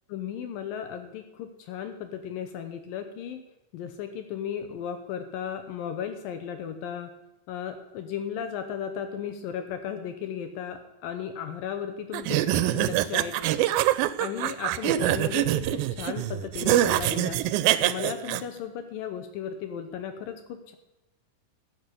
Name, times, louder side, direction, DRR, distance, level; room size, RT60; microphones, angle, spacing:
voice 1, 0.1-3.4 3.7-7.1 7.5-13.4 14.2-17.4 17.8-20.8, left 8 dB, 80° left, 7 dB, 2.6 m, -35 dB
sound 1, 12.1-18.4, right 13 dB, 90° right, 2.4 m, -24 dB
14.0 x 6.6 x 8.3 m, 0.98 s
omnidirectional pair, 4.1 m